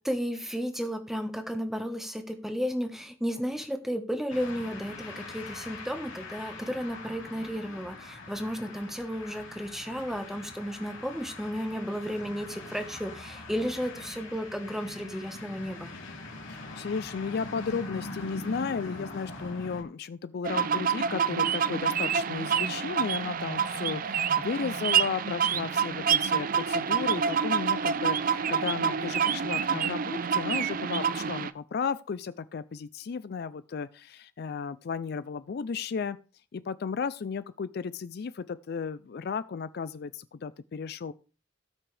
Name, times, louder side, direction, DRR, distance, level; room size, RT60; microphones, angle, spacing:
voice 1, 0.0-15.9, equal, ahead, 1.2 m, -33 dB
sound 1, 4.3-19.8, left 2 dB, 80° left, 3.4 m, -42 dB
voice 2, 16.5-36.2 36.5-41.1, left 5 dB, 55° left, 0.4 m, -34 dB
sound 2, 20.4-31.5, right 7 dB, 45° right, 0.5 m, -27 dB
18.0 x 6.1 x 3.3 m
head